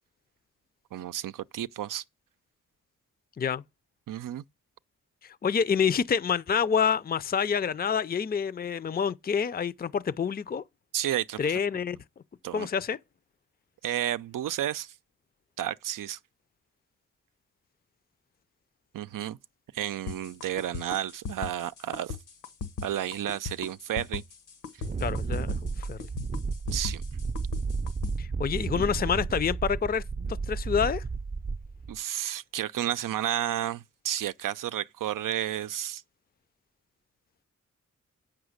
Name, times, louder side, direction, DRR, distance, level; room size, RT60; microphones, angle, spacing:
voice 1, 0.9-2.0 4.1-4.4 10.9-11.4 12.4-12.7 13.8-14.9 15.6-16.2 18.9-19.4 19.7-22.2 22.8-24.2 26.7-27.0 31.9-36.0, right 11 dB, 80° right, 0.5 m, -31 dB
voice 2, 5.2-10.6 11.4-12.0 12.5-13.0 25.0-26.0 28.2-30.0 30.5-31.0, left 7 dB, 30° left, 0.5 m, -27 dB
sound 1, 20.1-28.1, left 5 dB, 80° left, 1.2 m, -37 dB
Wind, 24.8-31.9, right 4 dB, 25° right, 0.5 m, -32 dB
8.0 x 6.0 x 6.4 m
cardioid pair, 55°, 32 cm